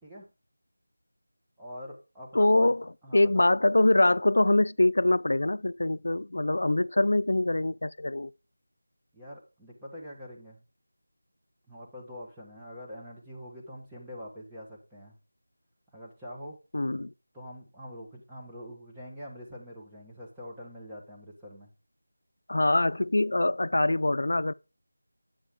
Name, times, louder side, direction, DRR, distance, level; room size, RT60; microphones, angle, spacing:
voice 1, 1.6-2.7 3.0-3.5 9.1-10.6 11.7-15.2 15.9-16.6 17.3-21.7, equal, 5° right, 1.2 m, -44 dB
voice 2, 2.3-8.3 16.7-17.1 22.5-24.5, left 2 dB, 65° left, 0.4 m, -24 dB
9.9 x 7.1 x 3.6 m
figure-of-eight pair, 175°, 0 cm